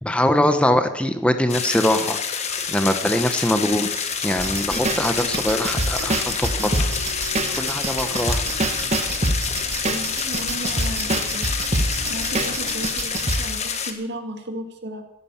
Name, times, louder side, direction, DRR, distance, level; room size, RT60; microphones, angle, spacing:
voice 1, 0.0-3.9 4.2-8.6, left 1 dB, 5° left, 8 dB, 1.0 m, -23 dB
sound 1, 1.5-13.9, left 6 dB, 30° left, 1.4 m, -27 dB
sound 2, 2.4-12.9, equal, 85° right, 6.9 m, -42 dB
sound 3, 4.4-13.5, right 2 dB, 30° right, 1.2 m, -26 dB
voice 2, 9.8-11.5 12.0-15.0, right 1 dB, 50° right, 5 dB, 2.2 m, -34 dB
16.0 x 10.0 x 7.3 m, 0.84 s
head